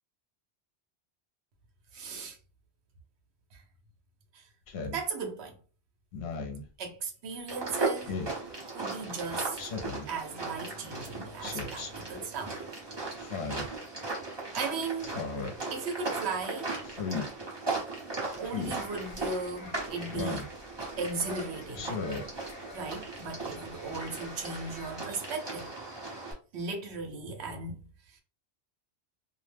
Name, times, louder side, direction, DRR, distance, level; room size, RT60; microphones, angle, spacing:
voice 1, 1.9-2.4 3.5-3.6 4.3-4.5 4.9-5.6 6.8-8.2 8.7-9.6 10.1-12.6 14.5-15.2 15.7-16.7 18.4-20.5 21.0-22.0 22.7-25.7 26.5-28.2, right 4 dB, 75° right, 0.9 m, -37 dB
Speech synthesizer, 4.7-5.0 6.1-6.6 8.1-8.4 9.6-10.1 11.4-11.9 13.2-13.7 15.0-15.5 16.8-17.3 18.4-18.8 20.1-20.5 21.7-22.2, left 4 dB, 75° left, 0.9 m, -36 dB
sound 1, 7.5-26.3, right 3 dB, 25° right, 0.8 m, -37 dB
sound 2, 18.3-24.9, left 2 dB, 45° left, 0.6 m, -49 dB
2.3 x 2.1 x 3.2 m
omnidirectional pair, 1.1 m